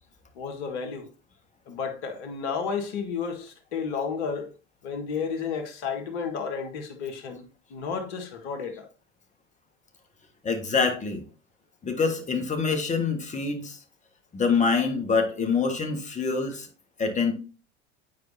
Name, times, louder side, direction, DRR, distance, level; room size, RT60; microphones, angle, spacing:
voice 1, 0.3-1.1 1.7-4.5 4.8-7.4 7.7-8.9, left 6 dB, 65° left, 1.6 m, -32 dB
voice 2, 10.4-11.2 11.8-13.8 14.3-16.7 17.0-17.3, left 5 dB, 20° left, 1.5 m, -25 dB
9.4 x 4.6 x 2.7 m
hypercardioid pair, 85°, 36 cm